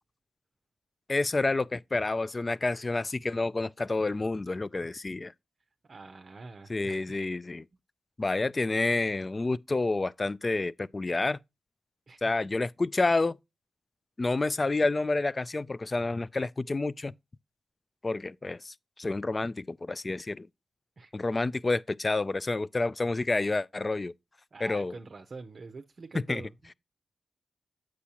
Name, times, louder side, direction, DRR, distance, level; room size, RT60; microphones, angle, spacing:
voice 1, 1.1-5.3 6.7-7.6 8.2-11.4 12.2-13.4 14.2-17.1 18.0-20.5 21.1-24.1 24.6-24.9 26.3-26.4, left 3 dB, 30° left, 0.3 m, -29 dB
voice 2, 5.8-7.2 12.1-12.4 21.0-21.1 24.5-26.7, right 4 dB, 45° right, 0.6 m, -45 dB
8.3 x 6.2 x 2.8 m
cardioid pair, 90°, 0 cm